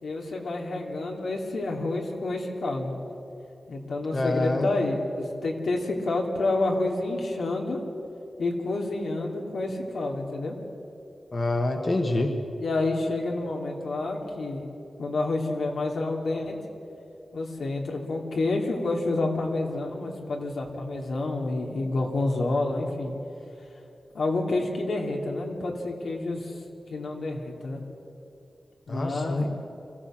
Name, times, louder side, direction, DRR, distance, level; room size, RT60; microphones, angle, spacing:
voice 1, 0.0-2.9 3.7-7.8 8.4-10.6 12.6-14.7 15.0-16.6 17.3-23.1 24.1-26.5 26.9-27.8 28.9-29.5, left 2 dB, 80° left, 1 dB, 2.6 m, -29 dB
voice 2, 4.1-4.7 11.3-12.3 28.9-29.5, left 2 dB, 35° left, 4 dB, 1.3 m, -26 dB
25.0 x 15.5 x 7.5 m, 2.9 s
wide cardioid pair, 165°, 0 cm